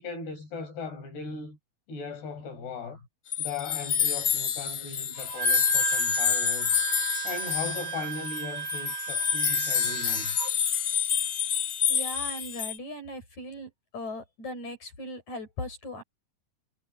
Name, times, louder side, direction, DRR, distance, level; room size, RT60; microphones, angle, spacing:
voice 1, 0.0-1.6 1.9-3.1 3.4-6.8 7.2-10.5, left 4 dB, 85° left, 7.3 m, -38 dB
sound 1, 3.3-12.8, left 8 dB, 65° left, 1.2 m, -28 dB
Wind instrument woodwind instrument, 5.2-10.5, right 11 dB, 45° right, 4.0 m, -34 dB
voice 2, 11.9-16.0, left 1 dB, 45° left, 7.5 m, -38 dB
omnidirectional pair, 4.6 m